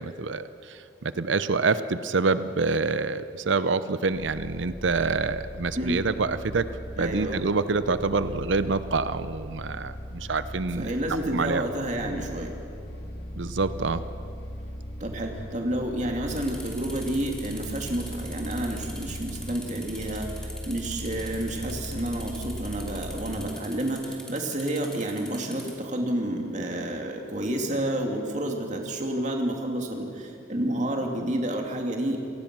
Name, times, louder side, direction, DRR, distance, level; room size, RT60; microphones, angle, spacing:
voice 1, 0.0-6.7 7.0-10.9 11.3-11.6 13.3-14.0, right 4 dB, 75° right, 13 dB, 0.7 m, -27 dB
sound 1, 4.0-23.6, equal, 60° left, 2.4 m, -39 dB
voice 2, 7.0-7.5 10.8-12.5 15.0-32.2, right 1 dB, 40° right, 2 dB, 2.6 m, -30 dB
sound 2, 16.3-25.7, equal, 5° left, 2.9 m, -44 dB
27.0 x 18.0 x 6.2 m, 2.8 s
head